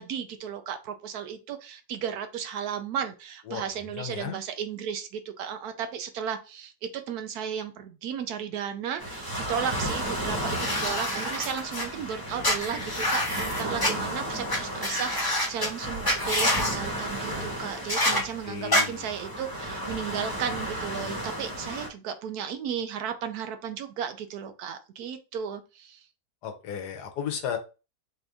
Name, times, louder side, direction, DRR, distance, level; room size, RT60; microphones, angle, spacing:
voice 1, 0.0-26.0, right 8 dB, 70° right, 1.0 m, -34 dB
voice 2, 3.9-4.4 18.1-19.1 26.4-27.6, left 8 dB, 75° left, 1.3 m, -34 dB
sound 1, 9.0-21.9, right 1 dB, 15° right, 0.9 m, -34 dB
sound 2, 10.5-11.8 12.4-13.9 14.5-14.6 14.8-15.7 16.0-16.7 17.9-18.2 18.7-18.8, left 1 dB, 20° left, 0.7 m, -26 dB
4.3 x 2.6 x 3.4 m
omnidirectional pair, 1.8 m